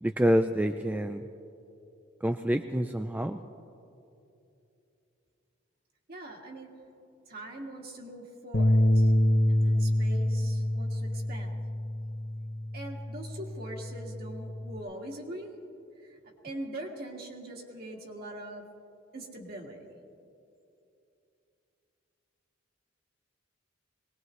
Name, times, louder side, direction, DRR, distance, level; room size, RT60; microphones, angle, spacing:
voice 1, 0.0-1.2 2.2-3.4, equal, 10° right, 7 dB, 0.3 m, -27 dB
voice 2, 6.1-6.7 7.3-9.1 9.5-11.6 12.7-15.5 16.0-16.2 16.4-18.7 19.1-19.9, right 1 dB, 50° right, 0 dB, 2.0 m, -42 dB
sound 1, 8.5-14.8, left 1 dB, 50° left, 0.7 m, -27 dB
23.0 x 19.5 x 3.2 m, 2.7 s
head